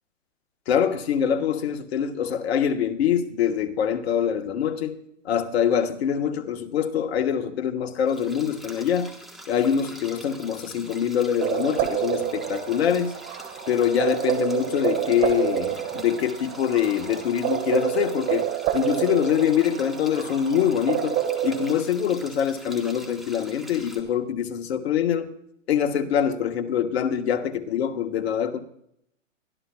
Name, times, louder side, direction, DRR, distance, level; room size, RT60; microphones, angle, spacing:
voice 1, 0.7-5.0 5.2-9.1 9.5-13.2 13.7-25.3 25.7-28.6, left 8 dB, 50° left, 7 dB, 1.3 m, -24 dB
sound 1, 8.1-24.0, equal, ahead, 1.2 m, -44 dB
sound 2, 11.4-21.7, right 11 dB, 25° right, 1.7 m, -28 dB
22.0 x 13.0 x 2.3 m, 0.74 s
hypercardioid pair, 130°, 39 cm